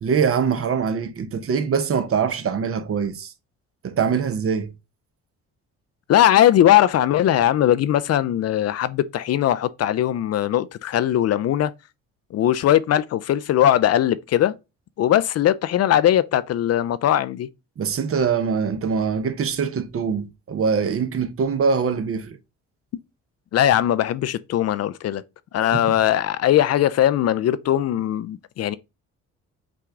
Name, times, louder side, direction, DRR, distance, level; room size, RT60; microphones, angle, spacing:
voice 1, 0.0-3.3 3.8-4.7 17.8-22.4 25.6-25.9, right 6 dB, 45° right, 0.7 m, -23 dB
voice 2, 6.1-11.7 12.3-14.5 15.0-17.5 23.5-25.2 25.5-28.8, left 11 dB, 50° left, 0.4 m, -19 dB
6.0 x 2.3 x 3.7 m
supercardioid pair, 70°, 31 cm